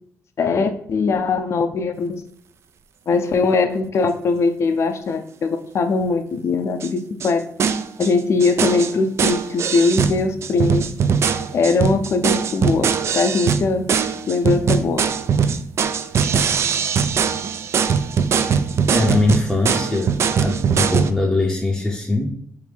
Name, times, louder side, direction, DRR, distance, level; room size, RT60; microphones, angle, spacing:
voice 1, 0.4-2.2 3.1-7.4 8.0-10.9 11.5-13.9 14.3-15.1, left 4 dB, 55° left, 7 dB, 0.5 m, -21 dB
sound 1, 6.8-6.9 7.2-7.3 7.6-8.1 8.4-21.1, right 6 dB, 55° right, 0.3 m, -21 dB
voice 2, 18.9-22.3, left 2 dB, 10° left, -2 dB, 0.6 m, -21 dB
3.4 x 3.1 x 4.8 m, 0.67 s
cardioid pair, 110°, 6 cm